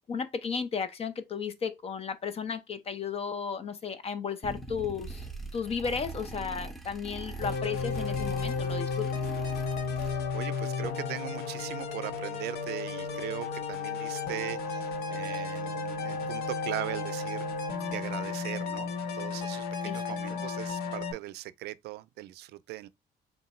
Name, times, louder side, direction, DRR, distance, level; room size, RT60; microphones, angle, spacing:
voice 1, 0.1-5.2 5.5-9.1 19.9-20.0 20.3-20.4, left 6 dB, 35° left, 0.6 m, -34 dB
sound 1, 4.4-10.5, right 3 dB, ahead, 0.7 m, -41 dB
sound 2, 7.4-21.1, left 5 dB, 70° left, 1.0 m, -33 dB
voice 2, 10.0-17.5 17.9-18.9 19.2-22.9, right 16 dB, 75° right, 0.5 m, -39 dB
3.9 x 2.3 x 4.2 m
cardioid pair, 110°, 17 cm